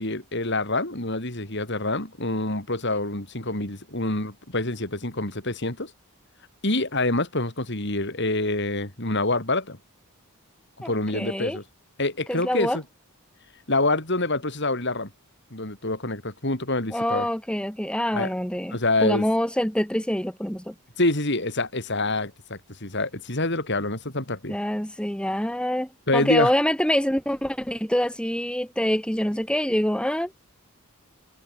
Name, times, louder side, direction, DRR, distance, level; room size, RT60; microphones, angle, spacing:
voice 1, 0.0-5.9 6.6-9.8 10.8-11.6 12.0-12.8 13.7-15.1 15.5-17.3 18.1-18.3 18.7-19.3 21.0-24.6 26.1-26.5, left 2 dB, 50° left, 4.9 m, -26 dB
voice 2, 10.8-11.6 12.3-12.8 16.9-20.7 24.5-30.4, equal, 5° left, 2.4 m, -26 dB
head